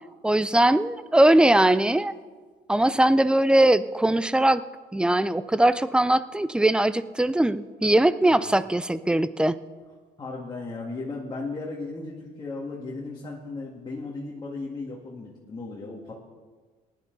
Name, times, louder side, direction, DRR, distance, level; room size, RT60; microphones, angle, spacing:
voice 1, 0.2-2.1 2.7-4.6 4.9-9.6, right 1 dB, 5° right, 15 dB, 0.4 m, -20 dB
voice 2, 10.2-16.1, left 3 dB, 25° left, -3 dB, 1.9 m, -36 dB
19.0 x 11.0 x 4.0 m, 1.4 s
cardioid pair, 110°, 17 cm